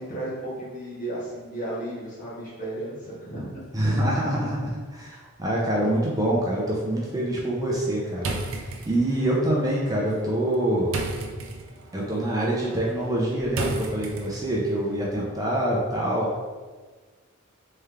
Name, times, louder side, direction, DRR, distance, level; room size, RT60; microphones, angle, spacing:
voice 1, 0.0-3.5, right 1 dB, 40° left, -8 dB, 1.5 m, -34 dB
voice 2, 3.7-11.0 11.9-16.3, right 1 dB, 20° right, -4 dB, 0.6 m, -25 dB
sound 1, 8.2-14.7, right 2 dB, 80° right, 0.5 m, -36 dB
3.5 x 3.3 x 3.4 m, 1.4 s
head